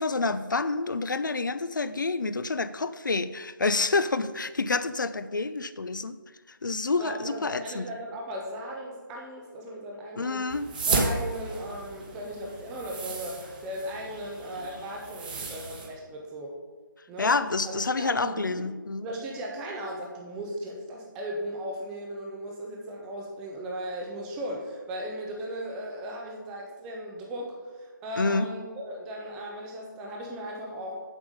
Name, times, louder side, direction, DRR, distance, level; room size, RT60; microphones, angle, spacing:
voice 1, 0.0-6.2 6.5-7.9 10.2-10.7 17.2-19.1 28.2-28.5, left 3 dB, 60° left, 13 dB, 0.6 m, -28 dB
voice 2, 7.0-10.4 10.9-16.6 17.1-17.3 17.7-18.7 19.0-30.9, right 1 dB, 5° right, -1 dB, 0.5 m, -37 dB
sound 1, 10.5-15.9, right 3 dB, 25° right, 1.0 m, -33 dB
7.3 x 7.1 x 5.0 m, 1.4 s
figure-of-eight pair, 165°, 12 cm